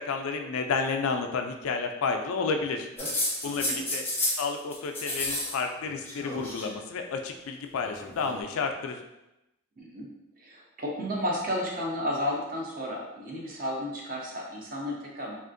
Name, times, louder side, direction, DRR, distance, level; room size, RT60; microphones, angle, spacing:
voice 1, 0.0-2.9 3.4-4.0 4.4-9.0, left 4 dB, 70° left, 5 dB, 0.3 m, -31 dB
sound 1, 3.0-4.5 4.7-5.6 5.8-6.7 7.7-8.4, left 1 dB, 10° left, 0.6 m, -31 dB
voice 2, 3.4-3.8 9.8-10.1 10.4-15.4, left 1 dB, 40° right, -2 dB, 0.6 m, -33 dB
3.4 x 2.4 x 2.5 m, 0.94 s
head